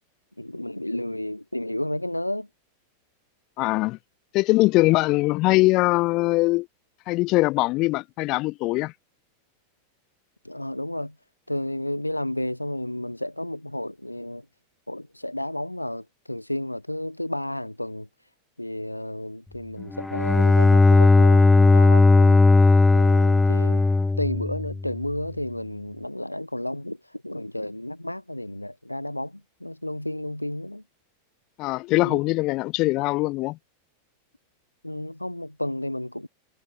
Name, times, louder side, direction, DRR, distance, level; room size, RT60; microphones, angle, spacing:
voice 1, 0.4-2.5 10.4-11.2 11.5-14.5 14.9-18.1 18.6-23.8 24.2-30.8 32.0-32.2 34.8-36.3, left 1 dB, 85° left, 1.3 m, -32 dB
voice 2, 3.6-4.0 4.3-6.7 7.1-8.9 31.6-33.6, left 21 dB, 40° left, 1.7 m, -22 dB
Bowed string instrument, 19.9-24.9, left 3 dB, 10° left, 0.9 m, -17 dB
figure-of-eight pair, 90°, 0 cm